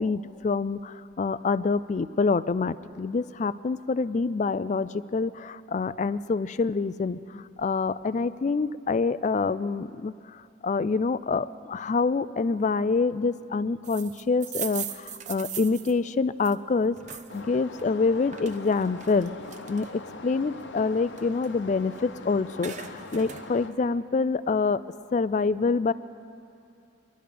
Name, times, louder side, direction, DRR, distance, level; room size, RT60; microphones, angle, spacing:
voice 1, 0.0-19.3 19.7-24.8 25.1-25.9, left 4 dB, 40° left, 16 dB, 0.3 m, -26 dB
sound 1, 13.8-17.4 17.8-20.1 20.6-22.1 22.4-23.5, right 9 dB, 40° right, 0.7 m, -39 dB
sound 2, 17.3-23.7, left 3 dB, 85° left, 0.9 m, -42 dB
22.5 x 12.0 x 5.1 m, 2.6 s
head